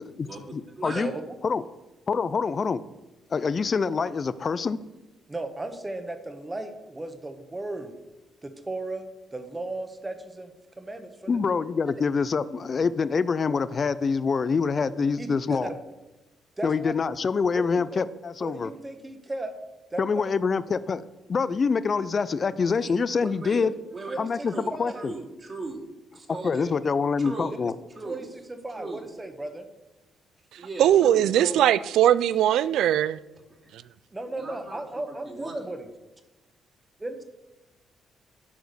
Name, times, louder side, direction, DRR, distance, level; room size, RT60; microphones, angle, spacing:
voice 1, 0.2-1.1 1.4-1.6 2.1-2.8 3.3-4.8 11.3-15.7 16.6-18.7 20.0-21.0 21.3-23.7 24.2-25.1 26.4-27.7, left 5 dB, 40° left, 0.4 m, -25 dB
voice 2, 0.8-1.1 22.6-22.9 23.4-23.6 23.9-24.2 24.5-25.8 26.1-26.7 27.2-27.6 28.0-28.3 28.8-29.0 30.6-31.7 33.5-33.6 34.3-35.6, right 2 dB, 40° right, 2.5 m, -38 dB
voice 3, 5.3-7.9 8.4-9.0 9.3-10.5 10.8-11.4 15.2-15.7 16.6-17.0 17.5-17.6 17.9-18.0 18.4-19.5 19.9-20.2 23.6-23.7 24.1-25.1 26.6-26.7 28.0-29.7 34.1-35.9 37.0-37.1, right 2 dB, 20° right, 1.2 m, -35 dB
voice 4, 30.8-33.2, right 11 dB, 80° right, 0.3 m, -20 dB
10.0 x 5.0 x 6.7 m
cardioid pair, 90°, 0 cm